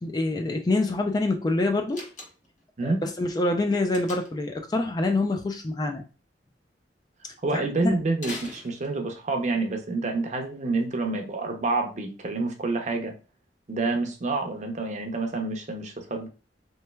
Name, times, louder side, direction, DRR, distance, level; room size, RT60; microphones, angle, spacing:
voice 1, 0.0-2.1 2.8-6.0 7.5-8.0, left 2 dB, 25° left, 0.3 m, -26 dB
Slam, 1.9-2.6 3.9-4.5 8.2-9.3, left 2 dB, 45° left, 0.8 m, -40 dB
voice 2, 7.4-13.1 13.7-16.3, right 3 dB, 40° right, 0.6 m, -28 dB
3.1 x 3.1 x 2.2 m
head